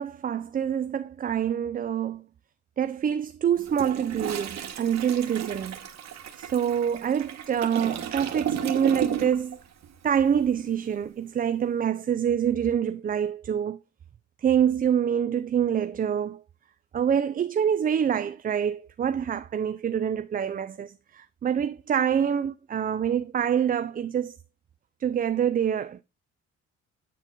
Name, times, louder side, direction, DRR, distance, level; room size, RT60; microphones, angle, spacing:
voice 1, 0.0-2.2 2.8-5.8 6.4-9.6 10.0-13.8 14.4-16.4 16.9-24.4 25.0-26.0, right 8 dB, 30° right, 0.4 m, -26 dB
Toilet flush, 3.6-9.5 9.8-10.1, right 9 dB, 60° right, 1.3 m, -33 dB
9.0 x 4.1 x 3.7 m
cardioid pair, 90°, 30 cm